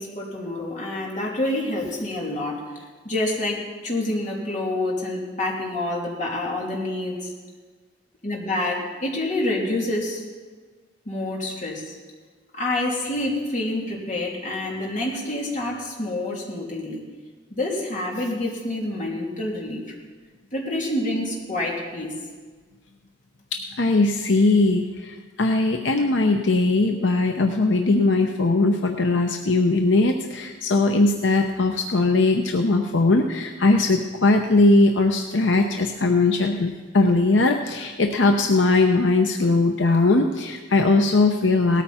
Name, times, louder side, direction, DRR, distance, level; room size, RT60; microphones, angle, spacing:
voice 1, 0.0-7.3 8.2-10.2 11.0-11.9 12.5-17.0 17.5-19.8 20.5-22.2, left 1 dB, 45° left, -3 dB, 3.1 m, -27 dB
voice 2, 23.5-41.8, left 2 dB, 80° left, 4 dB, 0.8 m, -20 dB
18.0 x 13.5 x 4.3 m, 1.4 s
head